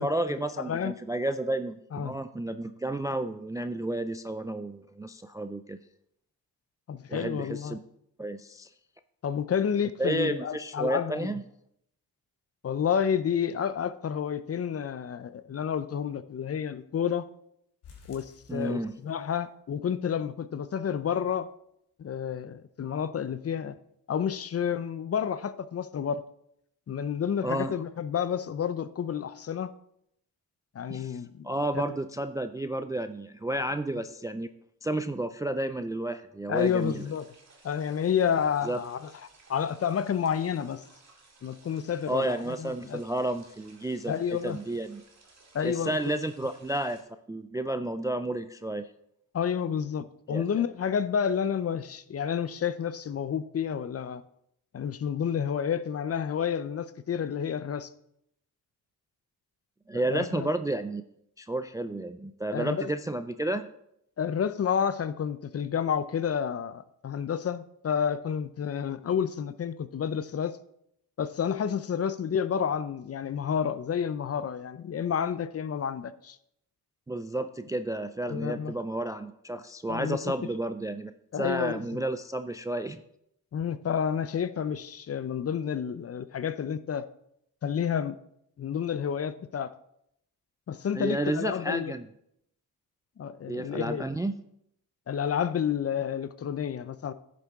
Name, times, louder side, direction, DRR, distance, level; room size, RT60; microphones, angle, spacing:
voice 1, 0.0-5.8 7.1-7.8 8.2-8.7 10.0-11.4 18.5-18.9 27.4-27.7 30.9-34.5 34.8-37.1 38.6-38.8 42.1-45.0 45.6-47.0 47.3-48.9 50.3-50.7 59.9-61.0 61.4-63.7 77.1-81.1 81.4-83.0 90.9-92.1 93.5-94.4, right 1 dB, 10° right, 0.3 m, -31 dB
voice 2, 6.9-7.8 9.2-11.3 12.6-17.2 18.1-21.5 22.0-23.8 24.1-26.2 26.9-29.7 30.7-31.5 31.7-31.8 36.5-37.2 37.6-39.1 39.5-40.8 41.4-43.0 44.1-44.6 45.5-46.1 49.3-54.2 54.7-57.9 60.1-60.5 62.5-62.9 64.2-70.6 71.2-76.4 78.3-78.7 79.9-80.3 81.3-82.0 83.5-87.1 87.6-88.2 88.6-89.7 90.7-91.9 93.2-94.1 95.1-97.1, left 8 dB, 40° left, 0.6 m, -30 dB
sound 1, 17.8-19.4 19.7-19.8 20.2-20.3 20.7-20.8, left 6 dB, 80° left, 3.1 m, -54 dB
sound 2, 36.5-47.0, right 3 dB, 40° right, 2.2 m, -58 dB
11.0 x 6.8 x 3.6 m
cardioid pair, 75°, 39 cm